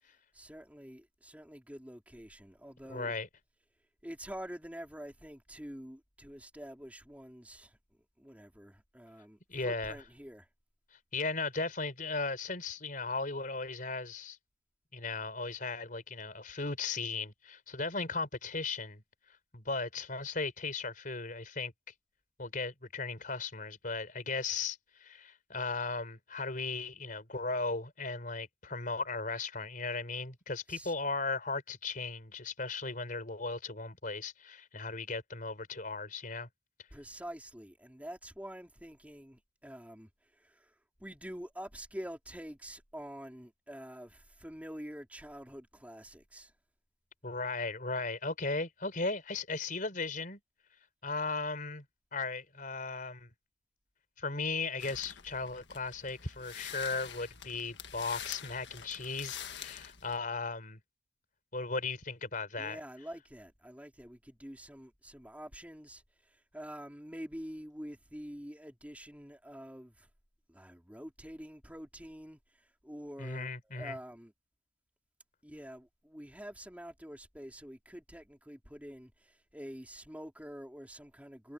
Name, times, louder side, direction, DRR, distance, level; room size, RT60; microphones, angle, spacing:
voice 1, 0.3-3.2 4.0-7.8 8.2-10.5 30.7-30.9 36.9-40.1 40.4-40.7 41.0-46.5 62.6-66.0 66.5-70.1 70.5-72.4 72.8-74.3 75.4-81.5, equal, 10° right, 3.6 m, -47 dB
voice 2, 2.9-3.3 9.5-10.0 11.1-14.4 14.9-19.0 19.5-21.7 22.4-36.5 47.2-50.4 51.0-51.8 52.1-53.3 54.2-60.8 61.5-62.8 73.2-74.0, left 3 dB, 45° left, 4.7 m, -36 dB
sound 1, 54.8-60.2, left 9 dB, 65° left, 1.7 m, -46 dB
head